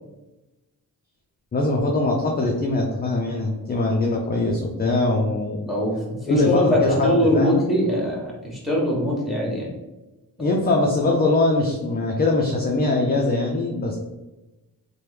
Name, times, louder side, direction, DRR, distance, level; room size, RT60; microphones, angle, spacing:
voice 1, 1.5-5.6 6.3-7.6 10.4-14.0, left 2 dB, 25° left, 0 dB, 0.4 m, -22 dB
voice 2, 5.6-9.7, equal, ahead, -3 dB, 1.2 m, -22 dB
3.0 x 2.2 x 3.3 m, 1.1 s
cardioid pair, 70°, 37 cm